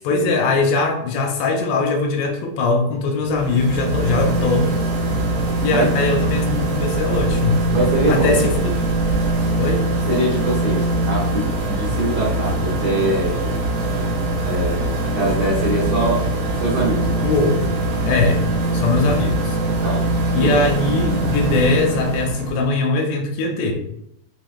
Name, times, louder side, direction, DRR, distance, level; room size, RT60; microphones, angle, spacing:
voice 1, 0.0-4.8 5.6-7.7 8.1-8.7 9.6-9.9 17.2-17.8 18.0-18.4 18.7-19.6 20.3-23.7, left 3 dB, 80° left, 2 dB, 2.6 m, -21 dB
sound 1, 3.2-22.6, right 2 dB, 60° right, 2.7 m, -22 dB
voice 2, 7.7-8.4 10.1-13.6 14.4-16.3 16.6-17.1 19.8-20.1 20.4-20.6, right 1 dB, 85° right, -6 dB, 1.5 m, -23 dB
7.4 x 2.9 x 2.3 m, 0.76 s
omnidirectional pair, 4.8 m